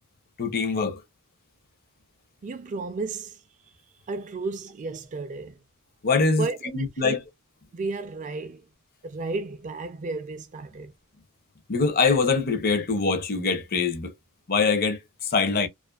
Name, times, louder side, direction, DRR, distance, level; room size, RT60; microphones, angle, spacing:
voice 1, 0.4-1.0 6.0-6.5 6.7-7.2 11.7-14.1 14.5-15.7, left 4 dB, 45° left, 0.6 m, -23 dB
voice 2, 2.4-3.4 4.1-5.6 6.4-6.7 7.0-7.1 7.7-8.7 9.0-10.9, right 3 dB, 35° right, 0.3 m, -33 dB
2.4 x 2.4 x 2.3 m
head